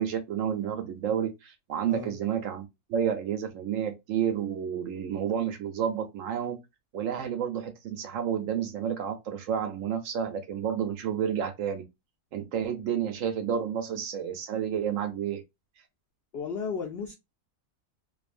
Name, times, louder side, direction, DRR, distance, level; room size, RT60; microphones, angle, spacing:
voice 1, 0.0-6.6 6.9-11.8 12.3-15.4, right 8 dB, 70° right, 0.8 m, -30 dB
voice 2, 16.3-17.1, left 5 dB, 80° left, 0.5 m, -34 dB
2.6 x 2.4 x 2.4 m
omnidirectional pair, 1.6 m